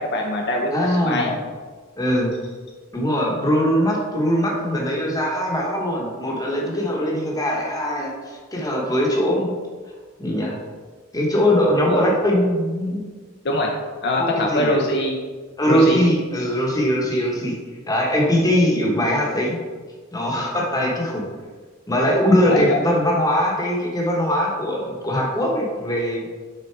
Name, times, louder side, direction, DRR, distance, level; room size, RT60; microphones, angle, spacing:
voice 1, 0.0-1.4 11.8-12.0 13.4-13.7 14.0-15.2 15.7-16.0 22.3-22.8, left 1 dB, 50° left, 0 dB, 0.7 m, -23 dB
voice 2, 0.7-1.4 2.0-2.3 2.9-9.5 10.2-10.6 11.1-13.1 14.2-14.7 15.6-17.5 17.9-19.6 20.1-21.2 21.9-26.3, equal, 15° left, -2 dB, 1.1 m, -21 dB
6.6 x 3.9 x 4.5 m, 1.5 s
head